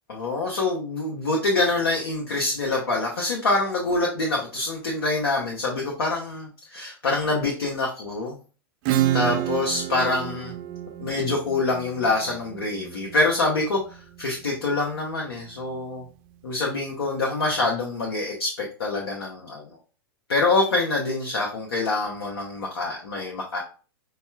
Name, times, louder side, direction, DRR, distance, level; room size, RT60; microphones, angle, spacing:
voice 1, 0.1-8.4 9.1-10.5 11.0-16.0 16.4-19.6 20.3-23.6, left 3 dB, 75° left, -1 dB, 0.8 m, -25 dB
Acoustic guitar / Strum, 8.9-14.2, right 13 dB, 45° right, 0.3 m, -29 dB
5.3 x 2.2 x 2.2 m, 0.38 s
hypercardioid pair, 105°, 13 cm